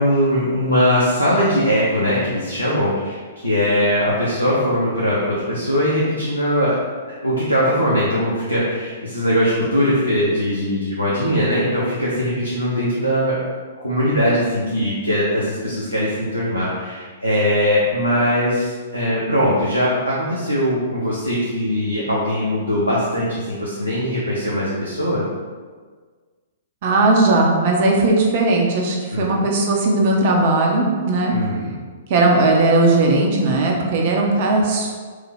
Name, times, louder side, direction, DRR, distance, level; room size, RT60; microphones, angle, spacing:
voice 1, 0.0-6.8 7.2-13.4 13.8-25.2 29.1-29.3 31.3-31.7, equal, 90° left, -7 dB, 0.5 m, -20 dB
voice 2, 26.8-31.3 32.1-35.0, right 2 dB, 45° right, 0 dB, 0.5 m, -17 dB
3.1 x 2.0 x 3.3 m, 1.5 s
figure-of-eight pair, 110°, 0 cm